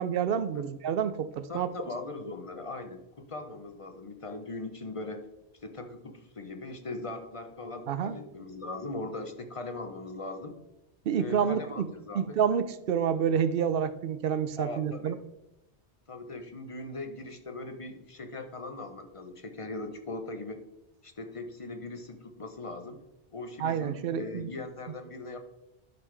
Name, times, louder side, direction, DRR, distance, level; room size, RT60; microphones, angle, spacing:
voice 1, 0.0-1.7 7.9-8.2 11.1-11.9 12.1-15.1 23.6-24.5, right 8 dB, 60° right, 13 dB, 0.7 m, -28 dB
voice 2, 1.5-5.3 5.6-10.6 11.1-12.4 14.6-15.1 16.1-20.6 21.0-23.0 23.3-25.4, left 2 dB, 35° left, 7 dB, 0.8 m, -40 dB
11.5 x 5.4 x 3.3 m, 0.94 s
omnidirectional pair, 1.2 m